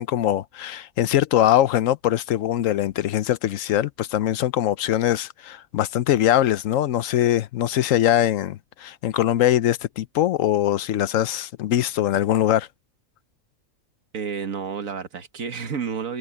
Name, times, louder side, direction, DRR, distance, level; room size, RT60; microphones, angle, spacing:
voice 1, 0.0-12.7, left 12 dB, 75° left, 1.0 m, -22 dB
voice 2, 14.1-16.2, right 6 dB, 80° right, 1.9 m, -30 dB
omnidirectional pair, 1.4 m